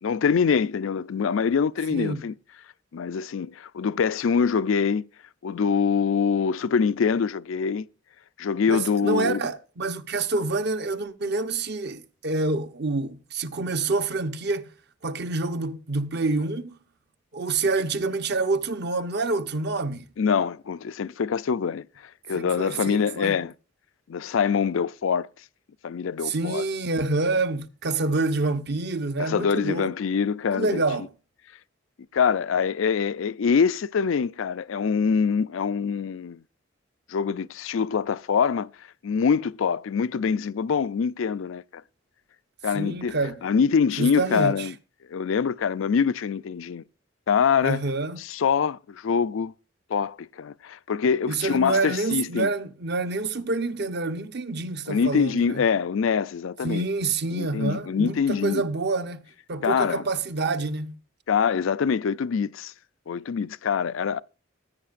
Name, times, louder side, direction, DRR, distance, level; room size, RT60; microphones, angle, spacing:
voice 1, 0.0-2.3 2.9-5.0 5.4-7.9 8.4-9.4 20.2-21.9 22.3-23.5 24.1-25.3 25.8-26.6 29.2-30.8 32.1-36.4 37.1-38.7 39.0-41.8 42.6-43.2 43.4-44.7 45.1-46.8 47.3-47.8 48.2-49.5 49.9-52.5 54.9-56.9 57.3-58.6 59.6-60.0 61.3-62.7 63.1-64.2, left 6 dB, 85° left, 0.4 m, -24 dB
voice 2, 1.9-2.2 8.7-14.7 15.0-16.8 17.3-20.1 22.3-23.4 26.2-29.9 30.5-31.1 42.7-43.4 44.0-44.7 47.6-48.2 51.3-55.6 56.6-59.2 59.5-61.0, right 3 dB, 60° right, 0.9 m, -27 dB
15.5 x 9.5 x 2.5 m
head